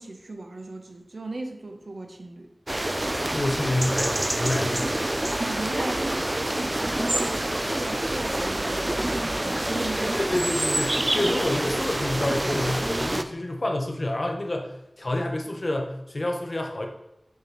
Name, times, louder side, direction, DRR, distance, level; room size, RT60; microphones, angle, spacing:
voice 1, 0.0-2.5 5.4-10.2, right 2 dB, 75° right, 4 dB, 0.7 m, -37 dB
sound 1, 2.7-13.2, right 1 dB, 30° right, 0.4 m, -27 dB
voice 2, 3.3-4.9 10.2-16.9, left 1 dB, 50° left, 2 dB, 0.9 m, -28 dB
6.5 x 3.0 x 5.1 m, 0.88 s
wide cardioid pair, 65°, 0 cm